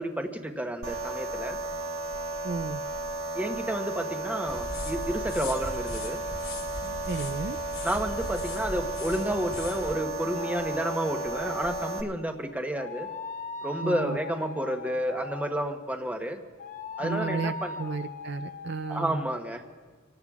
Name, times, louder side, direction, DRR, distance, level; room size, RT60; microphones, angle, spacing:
voice 1, 0.0-1.6 3.3-6.2 7.8-13.1 13.6-16.4 17.0-17.8 18.9-19.6, right 1 dB, 10° right, 5 dB, 0.9 m, -31 dB
sound 1, 0.8-12.0, right 2 dB, 85° right, 1.1 m, -34 dB
voice 2, 2.4-2.8 7.1-7.6 13.8-14.2 17.0-19.2, right 4 dB, 55° right, 10 dB, 0.5 m, -33 dB
sound 2, 4.5-9.9, left 2 dB, 70° left, 2.6 m, -38 dB
sound 3, 10.4-12.1 12.8-15.7 16.6-19.2, left 4 dB, 40° left, 0.8 m, -40 dB
26.0 x 18.0 x 2.4 m, 1.5 s
head